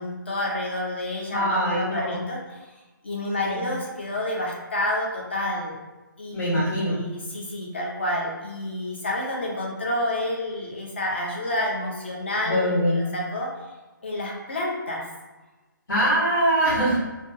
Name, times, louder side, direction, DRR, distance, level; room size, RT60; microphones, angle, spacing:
voice 1, 0.0-2.6 3.0-5.8 6.2-13.5 14.0-15.0, left 1 dB, 35° left, -2 dB, 0.5 m, -29 dB
voice 2, 1.3-2.2 3.4-3.7 6.3-7.0 12.4-13.0 15.9-17.0, equal, 70° left, -9 dB, 1.1 m, -23 dB
2.5 x 2.2 x 2.5 m, 1.1 s
hypercardioid pair, 180°, 11 cm